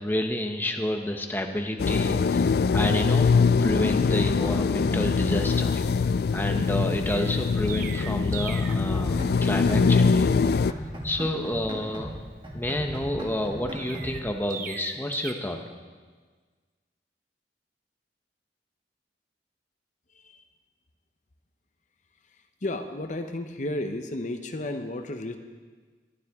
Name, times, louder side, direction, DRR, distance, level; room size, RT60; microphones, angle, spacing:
voice 1, 0.0-10.8 11.0-12.1 12.5-15.6, left 1 dB, 10° left, 4 dB, 0.9 m, -30 dB
sound 1, 1.8-10.7, left 5 dB, 60° left, 0.3 m, -23 dB
Chirp tweet, 7.1-8.8 13.8-15.3, right 7 dB, 50° right, 0.8 m, -38 dB
sound 2, 8.7-10.2 10.4-12.2 12.4-14.2, equal, 30° right, 1.9 m, -38 dB
voice 2, 20.1-20.4 22.3-25.4, left 1 dB, 45° left, 6 dB, 0.8 m, -33 dB
21.0 x 12.5 x 3.6 m, 1.5 s
head